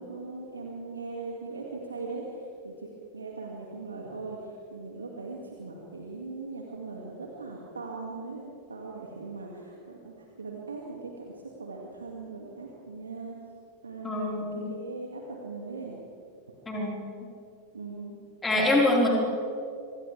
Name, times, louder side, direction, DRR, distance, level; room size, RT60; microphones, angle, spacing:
voice 1, 0.0-2.4 2.6-13.3 13.8-16.0 17.7-18.2, right 3 dB, 75° right, -1 dB, 2.4 m, -40 dB
voice 2, 14.0-14.6 16.6-17.0 18.4-19.1, left 1 dB, 15° left, -4 dB, 4.9 m, -24 dB
29.5 x 25.5 x 3.6 m, 2.4 s
figure-of-eight pair, 90°, 0 cm